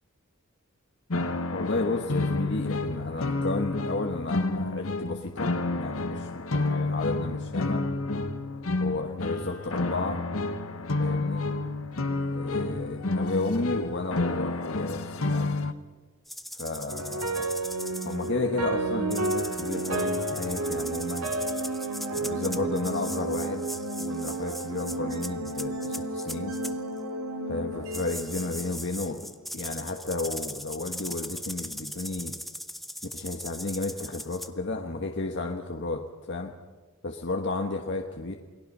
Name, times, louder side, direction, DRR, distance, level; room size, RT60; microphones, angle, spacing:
sound 1, 1.1-15.7, left 2 dB, 70° left, 1.3 m, -30 dB
voice 1, 1.5-7.8 8.8-10.2 11.0-11.4 12.3-15.6 16.5-17.5 18.0-21.3 22.1-23.7 24.0-26.5 27.5-29.2 29.5-32.3 33.1-36.5 37.0-38.3, left 2 dB, 55° left, 3 dB, 1.3 m, -32 dB
sound 2, 16.3-18.3 19.1-26.7 27.9-34.5, equal, ahead, 0.7 m, -39 dB
sound 3, 16.9-29.2, right 2 dB, 90° right, 2.7 m, -32 dB
29.0 x 19.0 x 5.5 m, 1.4 s
head